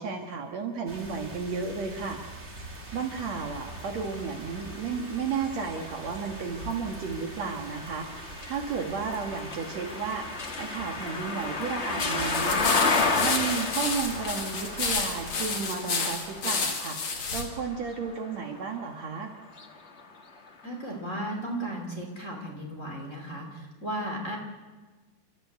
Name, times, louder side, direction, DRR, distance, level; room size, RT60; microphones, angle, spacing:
voice 1, 0.0-2.2 2.9-10.3 10.6-19.3, right 5 dB, 55° right, 3 dB, 2.5 m, -33 dB
sound 1, 0.9-15.6, right 2 dB, 20° right, 2.2 m, -44 dB
sound 2, 2.9-18.8 19.4-20.6, left 3 dB, 60° left, 0.7 m, -33 dB
sound 3, 12.3-17.5, left 4 dB, 40° left, 2.7 m, -30 dB
voice 2, 20.6-24.4, right 1 dB, 25° left, 0 dB, 2.8 m, -35 dB
29.5 x 13.5 x 8.1 m, 1.3 s
omnidirectional pair, 4.0 m